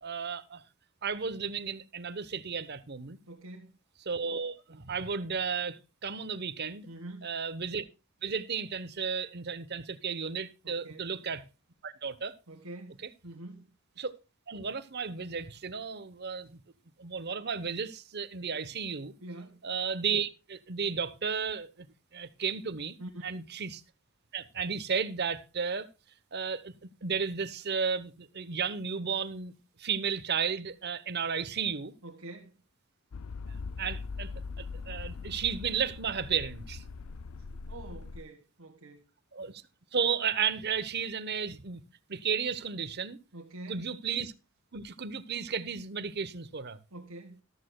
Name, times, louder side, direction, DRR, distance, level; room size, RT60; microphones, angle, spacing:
voice 1, 0.0-0.6 1.0-3.2 4.0-6.9 7.2-7.8 8.2-11.4 11.8-12.3 14.0-14.1 14.5-16.6 17.0-19.1 19.6-21.9 22.1-23.0 23.2-23.8 24.3-25.9 26.3-29.5 29.8-31.9 33.5-34.3 34.6-36.8 39.3-39.6 39.9-41.8 42.1-43.2 43.7-44.3 44.7-46.8, right 6 dB, 50° right, 0.9 m, -33 dB
voice 2, 3.3-3.8 6.9-7.3 10.6-11.1 12.5-13.7 19.2-19.6 23.0-23.5 32.0-32.6 37.7-39.1 43.3-43.9 46.9-47.4, right 2 dB, 90° right, 1.7 m, -46 dB
sound 1, 33.1-38.2, left 4 dB, 85° left, 0.5 m, -41 dB
14.0 x 13.0 x 2.3 m
head